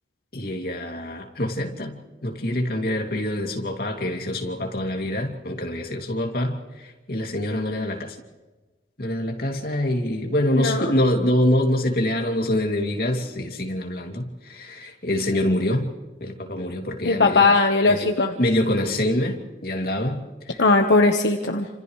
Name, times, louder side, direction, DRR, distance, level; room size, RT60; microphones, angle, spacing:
voice 1, 0.3-8.2 9.0-15.9 16.2-17.4 17.8-18.1 18.4-20.6, left 1 dB, 55° left, 2 dB, 2.8 m, -25 dB
voice 2, 10.5-10.9 17.0-18.3 20.6-21.7, left 3 dB, 80° left, 3 dB, 1.3 m, -19 dB
30.0 x 26.5 x 3.3 m, 1.2 s
head